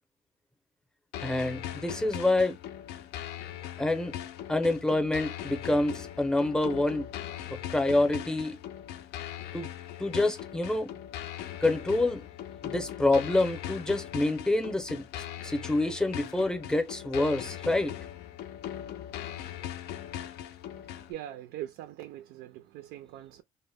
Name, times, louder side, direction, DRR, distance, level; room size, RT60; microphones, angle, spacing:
sound 1, 1.1-21.1, left 11 dB, 70° left, 0.4 m, -40 dB
voice 1, 1.2-2.6 3.8-4.1 4.5-7.1 7.7-8.6 9.5-9.7 10.0-10.9 11.6-12.3 12.6-17.9, left 2 dB, 5° left, 0.6 m, -27 dB
voice 2, 21.1-23.4, right 12 dB, 85° right, 0.4 m, -42 dB
2.1 x 2.1 x 3.3 m
cardioid pair, 110°, 17 cm